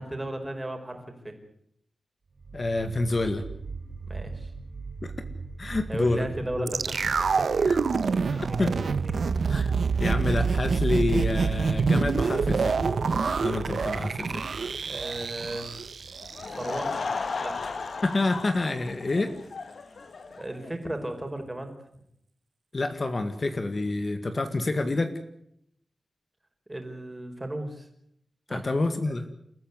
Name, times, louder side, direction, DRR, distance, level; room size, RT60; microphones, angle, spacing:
voice 1, 0.0-1.3 4.0-4.5 5.9-7.5 8.8-8.9 9.2-9.3 9.9-10.0 14.9-15.7 16.5-17.1 17.4-17.8 20.4-21.7 26.7-27.9 28.5-28.7, right 1 dB, 15° right, 5 dB, 4.8 m, -35 dB
sound 1, 2.4-19.4, right 4 dB, 50° right, 4.7 m, -41 dB
voice 2, 2.5-3.4 5.0-5.1 5.6-6.3 6.6-6.7 7.7-7.8 8.6-8.7 9.5-9.7 10.0-12.8 13.4-14.4 18.0-19.3 22.7-25.1 28.5-29.3, left 2 dB, 40° left, 8 dB, 1.9 m, -27 dB
sound 2, 6.7-16.8 17.1-17.2, right 5 dB, 65° right, 1.3 m, -26 dB
Laughter / Crowd, 16.2-20.7, left 4 dB, 60° left, 1.7 m, -35 dB
29.5 x 14.5 x 9.6 m, 0.73 s
wide cardioid pair, 125°, 0 cm